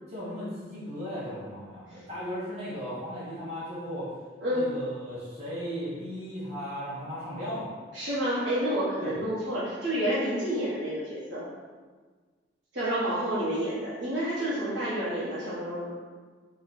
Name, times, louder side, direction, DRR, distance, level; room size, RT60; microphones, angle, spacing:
voice 1, 0.1-4.2 4.5-7.8 9.0-9.2, equal, 35° right, -10 dB, 1.2 m, -36 dB
voice 2, 7.9-11.5 12.7-15.9, equal, 75° right, -10 dB, 1.2 m, -29 dB
3.1 x 2.2 x 4.0 m, 1.5 s
head